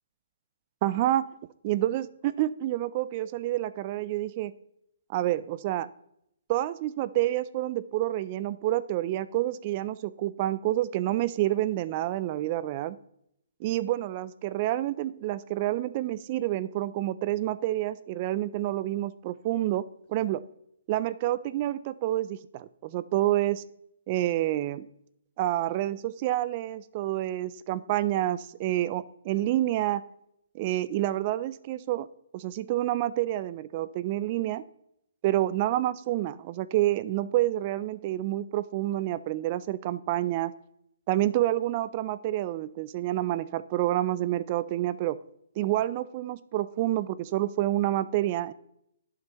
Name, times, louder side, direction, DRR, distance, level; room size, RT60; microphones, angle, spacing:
voice 1, 0.8-1.3 1.6-4.5 5.1-5.9 6.5-13.0 13.6-20.4 20.9-23.6 24.1-24.9 25.4-30.0 30.5-32.1 32.3-34.6 35.2-40.5 41.1-45.2 45.6-48.5, right 14 dB, 35° right, 17 dB, 0.3 m, -28 dB
11.0 x 8.6 x 3.0 m, 0.75 s
hypercardioid pair, 150°, 0 cm